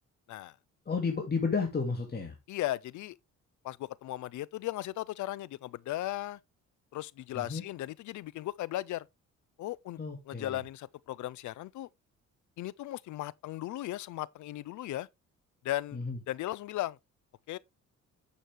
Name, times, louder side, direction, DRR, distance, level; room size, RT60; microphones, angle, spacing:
voice 1, 0.9-2.3 7.3-7.6 10.0-10.6 15.9-16.2, left 4 dB, 30° left, 2.4 m, -32 dB
voice 2, 2.5-3.2 3.6-6.4 6.9-9.1 9.6-10.0 10.3-11.9 12.6-15.1 15.6-16.0 16.3-17.0 17.5-17.6, left 15 dB, 75° left, 0.6 m, -36 dB
9.2 x 6.5 x 3.4 m
cardioid pair, 90°, 30 cm